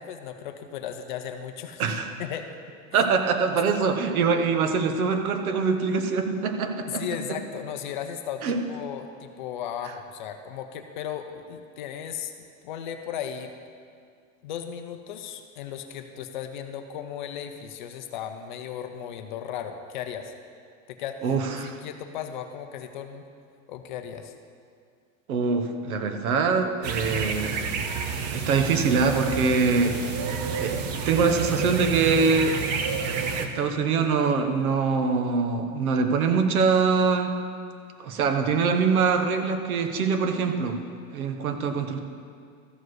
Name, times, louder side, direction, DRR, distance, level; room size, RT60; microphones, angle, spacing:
voice 1, 0.0-1.8 2.2-2.5 2.9-3.1 6.9-12.3 12.6-13.5 14.4-20.3 20.9-21.3 21.6-23.2 23.7-24.3, left 9 dB, 35° left, 7 dB, 0.4 m, -36 dB
voice 2, 1.8-2.1 2.9-7.0 8.4-8.6 21.2-21.8 25.3-27.6 28.3-30.0 30.6-32.6 33.4-37.3 38.0-40.8 41.1-42.0, right 5 dB, 90° right, 6 dB, 1.2 m, -24 dB
sound 1, 26.8-33.5, right 5 dB, 30° right, 0.5 m, -29 dB
13.5 x 4.8 x 6.3 m, 2.2 s
supercardioid pair, 170°, 42 cm